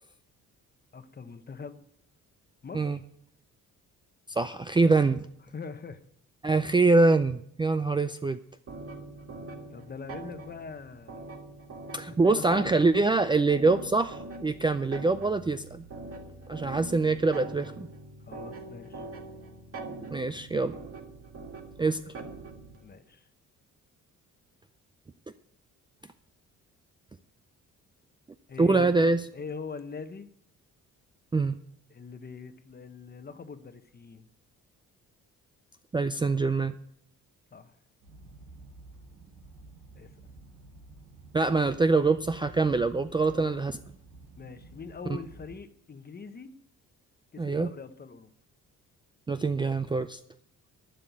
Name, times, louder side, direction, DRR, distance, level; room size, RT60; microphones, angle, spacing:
voice 1, 0.9-1.8 2.6-3.0 5.5-6.0 9.7-11.4 12.1-12.7 18.3-19.1 22.8-23.3 28.5-30.3 31.9-34.3 37.5-37.8 40.0-40.1 43.3-43.6 44.4-46.5 47.3-48.3, left 5 dB, 30° left, 10 dB, 1.0 m, -42 dB
voice 2, 4.3-5.3 6.4-8.4 11.9-15.8 16.5-17.9 20.1-20.8 21.8-22.1 28.6-29.2 31.3-31.6 35.9-36.7 41.3-43.8 47.4-47.7 49.3-50.2, right 3 dB, 15° right, 10 dB, 0.4 m, -24 dB
sound 1, 8.7-22.8, right 3 dB, 45° right, 1.8 m, -43 dB
sound 2, 38.0-45.6, right 3 dB, 90° right, 3.6 m, -51 dB
11.5 x 6.5 x 9.4 m, 0.70 s
cardioid pair, 110°, 31 cm